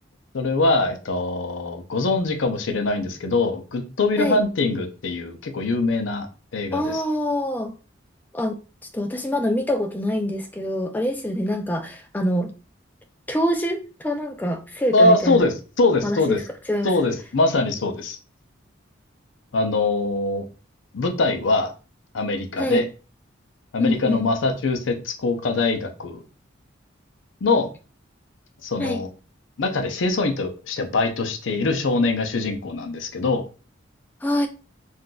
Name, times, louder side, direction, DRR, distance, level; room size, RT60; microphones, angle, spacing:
voice 1, 0.3-6.3 6.5-7.0 14.9-16.4 16.8-18.2 19.5-20.4 20.9-21.7 22.1-22.8 23.7-26.2 27.4-27.7 28.6-29.1 29.6-33.4, left 3 dB, 75° left, 0.5 m, -22 dB
voice 2, 6.7-7.7 8.3-8.6 8.9-12.5 13.3-15.5 16.0-16.4 16.7-17.1 22.6-22.8 23.8-24.2 28.8-29.0 34.2-34.5, equal, 10° left, 0.3 m, -25 dB
3.8 x 2.5 x 2.2 m
head